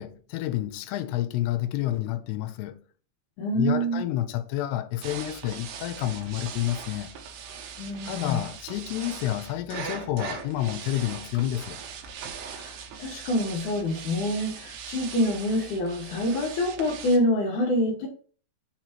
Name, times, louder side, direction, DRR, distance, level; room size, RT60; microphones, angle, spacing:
voice 1, 0.0-2.8 3.5-7.1 8.1-11.8, left 13 dB, 80° left, 2.7 m, -29 dB
voice 2, 3.4-4.0 7.8-8.4 12.5-18.1, equal, 60° left, 2.3 m, -26 dB
sound 1, 5.0-17.2, right 7 dB, 80° right, 3.0 m, -40 dB
6.7 x 3.1 x 5.8 m
omnidirectional pair, 4.9 m